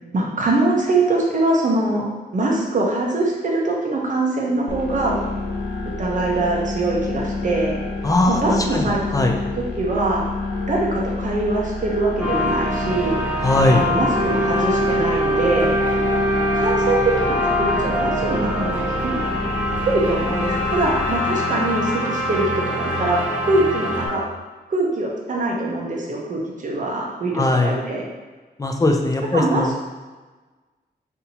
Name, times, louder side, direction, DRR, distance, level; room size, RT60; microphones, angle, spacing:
voice 1, 0.1-2.0 2.3-5.2 6.0-7.8 8.3-9.0 9.8-10.3 10.7-13.2 13.7-15.7 16.5-19.2 19.8-24.2 24.7-28.0 29.3-29.8, right 2 dB, 45° right, -2 dB, 0.8 m, -23 dB
sound 1, 4.7-21.1, left 2 dB, 80° left, 0.6 m, -29 dB
voice 2, 8.0-9.4 13.4-13.9 27.3-27.7 28.6-29.7, left 2 dB, 20° left, 3 dB, 0.4 m, -19 dB
sound 2, 12.2-24.1, equal, 10° right, 0.7 m, -23 dB
5.6 x 2.7 x 2.8 m, 1.3 s
wide cardioid pair, 165°, 18 cm